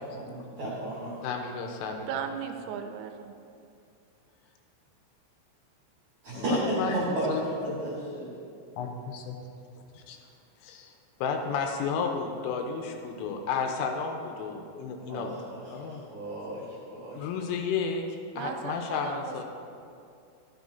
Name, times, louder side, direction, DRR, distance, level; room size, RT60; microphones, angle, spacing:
voice 1, 0.0-1.2 6.2-8.3 15.1-17.2, right 1 dB, 55° right, -7 dB, 2.1 m, -33 dB
voice 2, 1.2-2.1 6.3-7.0 7.3-7.4 8.8-9.4 9.9-10.2 10.6-10.9 11.2-16.0 17.1-18.1 18.4-19.4, left 5 dB, 85° left, 3 dB, 3.2 m, -32 dB
voice 3, 2.1-3.4 18.4-19.4, right 7 dB, 85° right, 6 dB, 3.3 m, -36 dB
12.5 x 12.0 x 2.7 m, 2.5 s
omnidirectional pair, 5.9 m